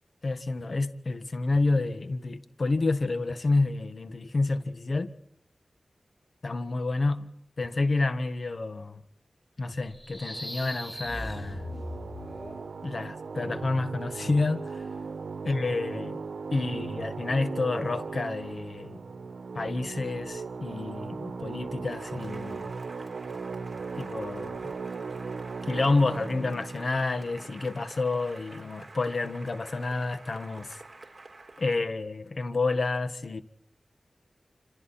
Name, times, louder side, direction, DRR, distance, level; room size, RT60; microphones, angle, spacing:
voice 1, 0.2-5.1 6.4-9.0 9.6-11.7 12.8-14.9 15.4-16.2 16.5-19.0 19.5-22.7 24.0-24.8 25.6-30.8 31.6-33.4, left 3 dB, 60° left, 1.6 m, -29 dB
sound 1, 9.9-12.7, left 1 dB, 10° left, 3.7 m, -39 dB
sound 2, 10.2-28.3, right 4 dB, 90° right, 1.2 m, -38 dB
Cheering / Applause, 21.9-31.9, right 3 dB, 45° right, 3.7 m, -48 dB
27.5 x 27.0 x 4.3 m
cardioid pair, 50°, 0 cm